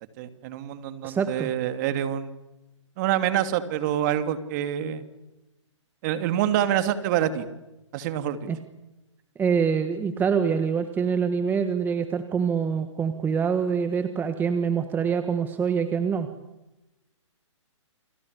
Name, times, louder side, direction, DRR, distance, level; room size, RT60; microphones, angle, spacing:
voice 1, 0.2-2.4 3.0-5.0 6.0-7.5 7.9-8.4, right 11 dB, 35° right, 10 dB, 2.6 m, -26 dB
voice 2, 1.0-1.5 8.5-8.6 9.3-16.3, right 6 dB, 10° right, 9 dB, 1.6 m, -25 dB
29.5 x 23.5 x 8.3 m, 0.98 s
hypercardioid pair, 140°, 16 cm